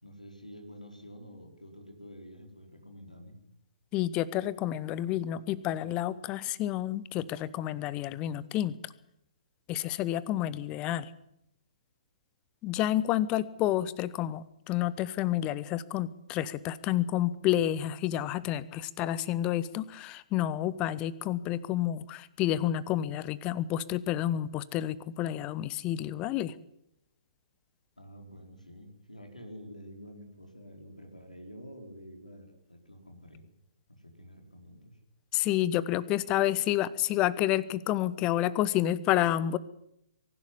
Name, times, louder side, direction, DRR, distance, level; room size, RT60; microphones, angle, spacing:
voice 1, 0.0-3.4 28.0-33.5 33.9-35.0, equal, 85° left, 3 dB, 4.4 m, -48 dB
voice 2, 3.9-8.9 9.7-11.1 12.6-26.5 35.3-39.6, left 13 dB, 25° left, 19 dB, 0.9 m, -29 dB
23.5 x 11.5 x 9.9 m, 0.80 s
figure-of-eight pair, 125°, 4 cm